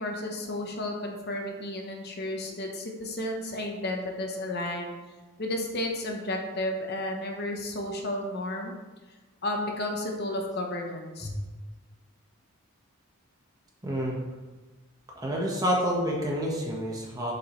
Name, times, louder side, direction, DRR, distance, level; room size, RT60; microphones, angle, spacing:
voice 1, 0.0-4.9 5.4-8.7 9.4-11.3, left 1 dB, 45° left, 2 dB, 1.0 m, -32 dB
voice 2, 13.8-14.2 15.1-17.3, equal, 15° right, -3 dB, 1.3 m, -28 dB
8.0 x 7.4 x 3.2 m, 1.3 s
head